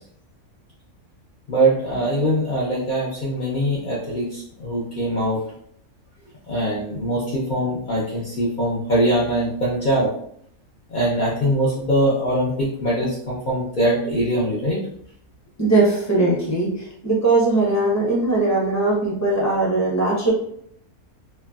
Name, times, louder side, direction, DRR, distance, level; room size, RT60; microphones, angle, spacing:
voice 1, 1.5-5.4 6.5-10.1 10.9-14.8, right 1 dB, 70° left, -7 dB, 0.4 m, -22 dB
voice 2, 15.6-20.3, right 2 dB, 15° left, -5 dB, 0.6 m, -20 dB
3.2 x 2.1 x 2.3 m, 0.67 s
omnidirectional pair, 1.6 m